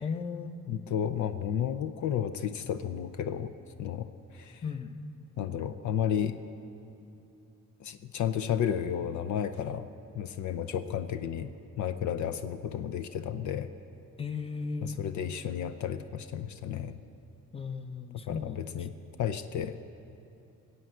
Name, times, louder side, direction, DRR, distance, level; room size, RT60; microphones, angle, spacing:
voice 1, 0.0-0.5 4.6-4.9 12.1-12.3 14.2-15.0 17.5-18.9, left 5 dB, 20° left, 8 dB, 0.9 m, -36 dB
voice 2, 0.7-3.5 3.8-4.6 5.4-6.4 7.8-9.9 10.1-11.5 11.8-13.7 14.8-17.0 18.3-18.9 19.2-19.8, left 9 dB, 70° left, 10 dB, 0.7 m, -32 dB
19.0 x 7.9 x 8.1 m, 2.8 s
cardioid pair, 90°, 30 cm